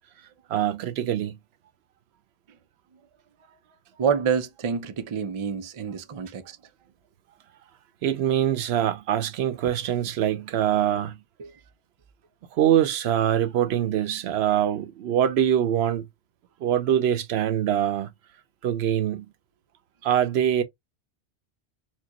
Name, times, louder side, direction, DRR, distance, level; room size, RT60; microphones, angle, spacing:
voice 1, 0.5-1.4 8.0-11.2 12.5-16.1 16.6-18.1 18.6-19.3 20.0-20.6, right 10 dB, 75° right, 0.8 m, -24 dB
voice 2, 4.0-6.6 11.4-11.5, right 6 dB, 45° right, 0.4 m, -27 dB
4.5 x 2.2 x 2.9 m
omnidirectional pair, 1.1 m